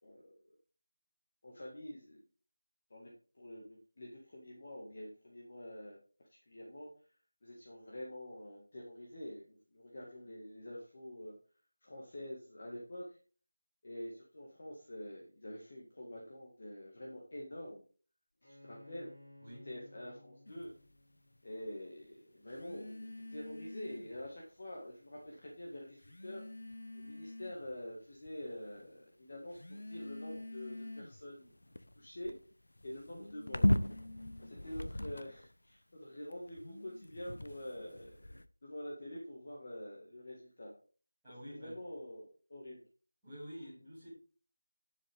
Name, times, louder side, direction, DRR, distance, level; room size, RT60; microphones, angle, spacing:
voice 1, 0.0-0.6 1.4-2.2 2.9-6.0 6.5-6.9 7.4-11.3 11.8-13.2 13.8-17.8 18.4-19.1 19.6-20.7 21.4-26.4 26.9-31.5 31.9-32.3 32.8-33.6 34.4-38.1 38.6-40.7 41.5-42.8, left 1 dB, 30° left, -2 dB, 1.8 m, -46 dB
Bowed string instrument, 18.4-22.0, left 1 dB, 50° left, 5.0 m, -59 dB
sound 1, 20.5-20.7 22.5-24.3 25.2-25.3 26.0-27.7 28.3-28.8 29.5-35.5 36.3-38.5, left 1 dB, 70° left, 0.8 m, -39 dB
voice 2, 41.2-41.8 43.2-44.1, equal, ahead, -17 dB, 5.7 m, -49 dB
14.5 x 7.5 x 3.5 m, 0.40 s
figure-of-eight pair, 180°, 0 cm